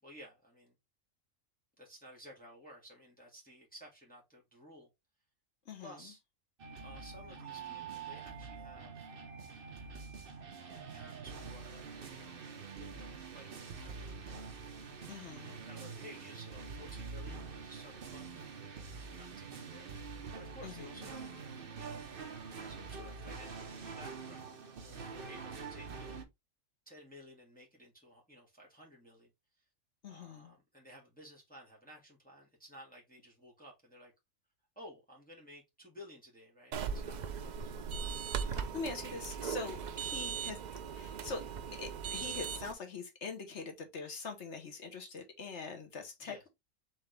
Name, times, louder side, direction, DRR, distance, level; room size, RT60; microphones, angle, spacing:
voice 1, 0.0-0.7 1.8-4.9 5.8-6.2 6.8-9.1 10.2-14.2 15.3-21.3 21.7-22.0 22.7-26.2 26.8-29.3 30.1-34.1 34.7-37.7 38.5-38.8 39.6-39.7 46.2-46.5, equal, 5° left, 1.7 m, -55 dB
voice 2, 5.7-6.0 15.1-15.6 20.6-21.1 30.0-30.5 38.5-40.6 40.9-41.4 41.8-46.5, left 4 dB, 60° left, 1.4 m, -43 dB
sound 1, 6.6-26.2, right 5 dB, 50° right, 0.9 m, -46 dB
sound 2, 36.7-42.7, right 7 dB, 75° right, 0.4 m, -39 dB
4.5 x 3.7 x 3.2 m
omnidirectional pair, 1.4 m